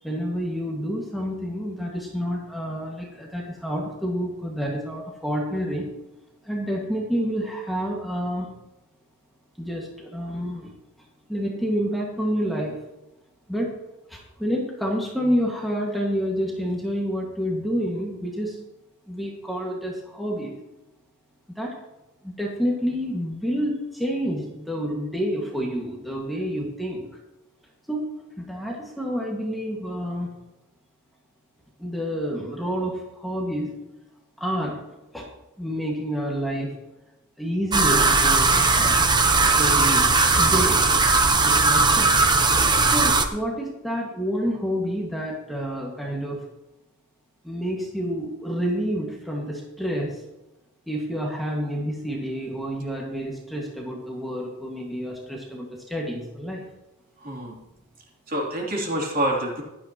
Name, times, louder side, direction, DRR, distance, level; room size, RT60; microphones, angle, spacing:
voice 1, 0.0-5.9 6.4-8.6 9.6-10.7 11.3-12.8 13.5-13.7 14.1-18.6 19.1-20.6 21.5-21.7 22.2-27.1 27.9-28.0 28.4-30.3 31.8-33.7 34.4-34.8 35.1-35.3 35.6-36.7 37.4-39.2 39.6-40.8 41.4-42.2 42.8-46.4 47.4-50.2 50.9-56.7, equal, ahead, -3 dB, 1.8 m, -28 dB
sound 1, 37.7-43.3, right 3 dB, 20° right, 0.8 m, -18 dB
voice 2, 57.2-57.6 58.3-59.6, right 1 dB, 40° right, -2 dB, 3.1 m, -26 dB
16.0 x 12.0 x 3.0 m, 1.0 s
head